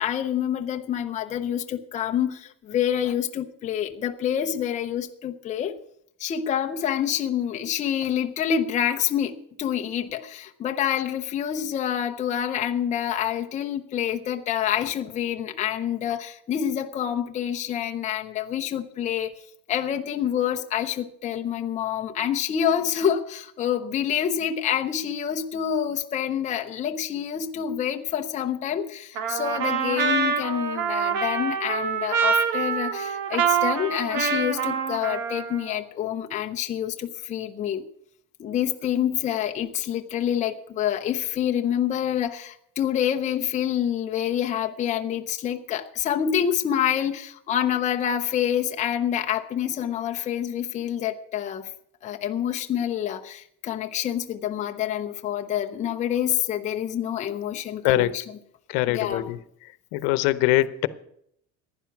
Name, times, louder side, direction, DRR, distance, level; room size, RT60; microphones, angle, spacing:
voice 1, 0.0-5.8 6.2-19.3 19.7-37.9 38.4-51.7 52.0-58.2 58.9-59.3, left 9 dB, 20° left, 4 dB, 0.6 m, -27 dB
Trumpet, 29.2-35.8, right 6 dB, 85° right, 1.9 m, -26 dB
voice 2, 57.5-58.1 58.7-59.4 59.9-60.9, left 16 dB, 75° left, 15 dB, 0.9 m, -23 dB
15.0 x 10.5 x 6.0 m, 0.71 s
cardioid pair, 175°, 35 cm